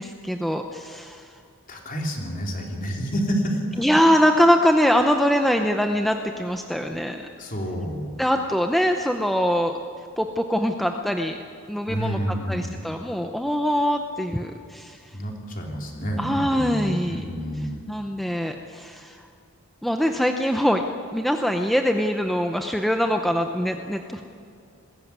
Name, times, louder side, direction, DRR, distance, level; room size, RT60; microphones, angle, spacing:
voice 1, 0.0-1.4 3.8-7.2 8.2-9.8 10.2-11.4 11.7-12.2 12.5-15.2 16.2-17.2 17.9-19.2 19.8-20.8 21.1-24.2, equal, ahead, 4 dB, 0.7 m, -23 dB
voice 2, 1.7-3.8 7.4-8.1 11.9-12.7 15.1-17.8, equal, 40° left, 1 dB, 3.3 m, -29 dB
20.5 x 16.5 x 9.5 m, 2.4 s
head